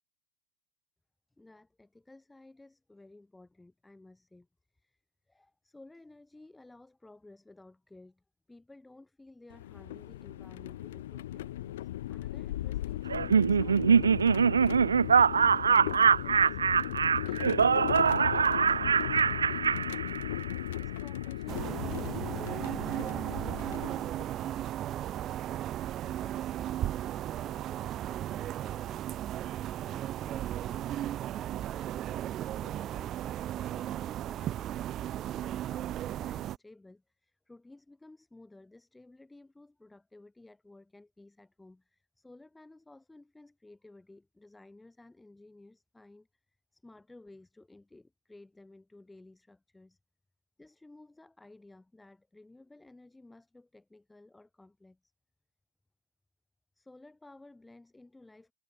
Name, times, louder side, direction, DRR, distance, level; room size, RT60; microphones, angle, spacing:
voice 1, 1.4-4.5 4.7-5.0 5.3-16.6 16.9-20.4 20.8-22.3 22.8-29.1 29.8-32.0 32.5-46.4 46.7-50.0 50.6-55.1 56.7-58.5, left 2 dB, 5° left, 4.7 m, -55 dB
sound 1, 9.5-24.5, left 14 dB, 55° left, 2.3 m, -37 dB
Laughter, 13.1-20.6, right 6 dB, 70° right, 0.5 m, -24 dB
sound 2, 21.5-36.6, right 12 dB, 30° right, 1.0 m, -35 dB
figure-of-eight pair, 90°, 0 cm